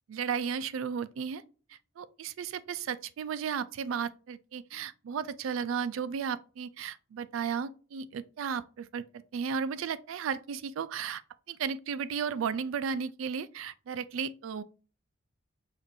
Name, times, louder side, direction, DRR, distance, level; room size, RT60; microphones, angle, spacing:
voice 1, 0.1-1.4 2.0-11.2 11.5-14.6, right 6 dB, 85° right, 0.3 m, -34 dB
6.0 x 2.5 x 2.6 m
head